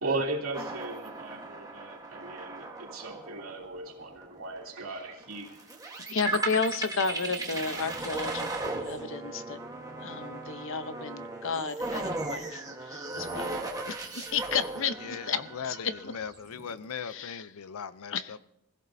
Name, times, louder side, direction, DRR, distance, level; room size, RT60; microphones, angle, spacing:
voice 1, 0.0-5.6, right 2 dB, 70° right, 2.9 m, -36 dB
sound 1, 0.5-16.8, right 2 dB, 15° right, 1.3 m, -37 dB
voice 2, 6.1-9.6 10.0-13.6 13.9-16.1 17.0-17.5 18.1-18.4, left 5 dB, 60° left, 0.8 m, -33 dB
voice 3, 15.0-18.4, left 7 dB, 85° left, 0.6 m, -39 dB
24.5 x 16.0 x 2.7 m
head